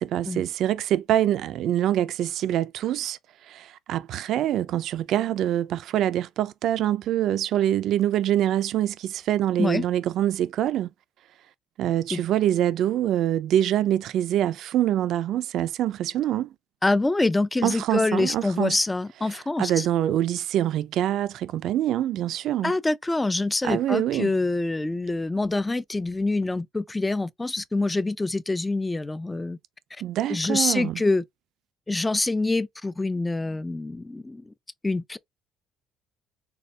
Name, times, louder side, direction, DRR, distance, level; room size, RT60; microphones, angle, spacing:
voice 1, 0.0-10.9 11.8-16.5 17.6-18.8 19.3-22.7 23.6-24.3 30.0-31.0, right 12 dB, 60° right, 0.4 m, -25 dB
voice 2, 16.8-19.9 22.6-29.6 30.3-31.2 31.9-34.5 34.8-35.2, left 2 dB, 10° left, 0.3 m, -25 dB
6.7 x 2.3 x 3.2 m
cardioid pair, 150°, 0 cm